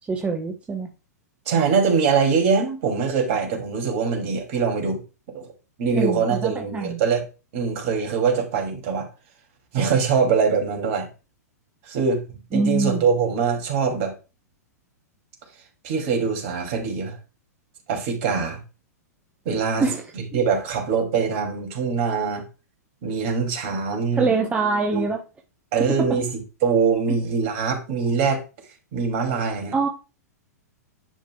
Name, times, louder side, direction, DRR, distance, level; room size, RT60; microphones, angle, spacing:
voice 1, 0.1-0.9 5.9-7.0 12.5-13.0 19.8-20.0 20.3-20.4 24.1-25.2 25.8-26.1 29.7-29.9, right 4 dB, 15° right, 1.0 m, -24 dB
voice 2, 1.5-5.0 5.3-5.5 5.8-7.3 7.5-9.1 9.7-11.1 11.8-12.2 12.5-14.1 15.8-17.2 17.9-18.6 19.4-19.8 20.1-22.4 23.0-24.3 24.9-25.1 25.7-26.3 26.6-28.4 28.9-29.7, right 5 dB, 50° right, 2.8 m, -23 dB
10.0 x 5.2 x 2.3 m
hypercardioid pair, 110°, 9 cm